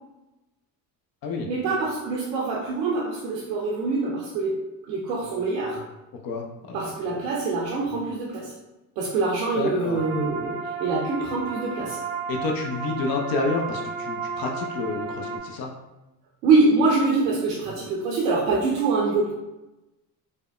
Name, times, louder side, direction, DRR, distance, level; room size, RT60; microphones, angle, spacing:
voice 1, 1.5-4.6 4.9-5.8 6.7-8.5 9.0-10.5 10.8-12.0 16.4-19.3, right 3 dB, 85° right, -4 dB, 0.6 m, -24 dB
voice 2, 6.2-7.2 9.5-10.0 12.3-15.7, left 3 dB, 45° left, 2 dB, 0.5 m, -29 dB
sound 1, 10.0-15.4, right 4 dB, 20° right, 0.6 m, -33 dB
3.4 x 2.1 x 2.3 m, 0.99 s
hypercardioid pair, 65°, 49 cm